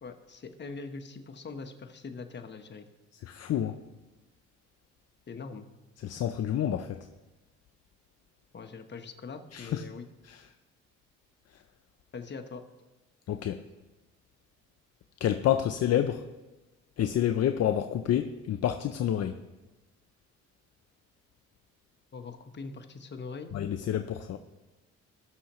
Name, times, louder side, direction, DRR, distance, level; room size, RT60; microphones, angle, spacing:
voice 1, 0.0-2.9 5.3-5.7 8.5-10.1 12.1-12.6 22.1-23.5, left 4 dB, 35° left, 6 dB, 1.1 m, -42 dB
voice 2, 3.2-3.8 6.0-7.0 9.5-9.8 10.3-10.5 13.3-13.6 15.2-16.2 17.0-19.4 23.5-24.4, left 10 dB, 55° left, 9 dB, 0.6 m, -28 dB
19.0 x 6.5 x 3.0 m, 1.1 s
cardioid pair, 90°, 30 cm